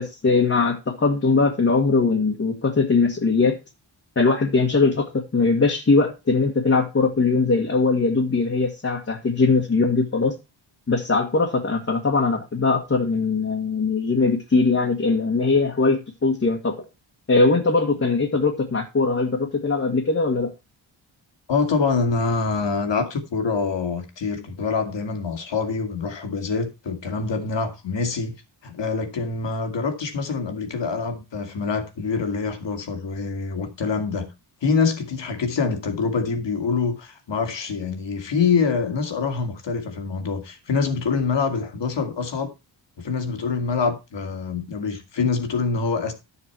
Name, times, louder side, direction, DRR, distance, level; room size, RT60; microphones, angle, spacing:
voice 1, 0.0-3.6 4.1-10.3 10.9-16.8 17.3-20.5, left 3 dB, 30° left, 1.7 m, -21 dB
voice 2, 21.5-28.4 28.6-34.3 34.6-42.5 43.0-46.1, left 4 dB, 65° left, 2.5 m, -25 dB
12.0 x 7.1 x 4.5 m
wide cardioid pair, 145°, 46 cm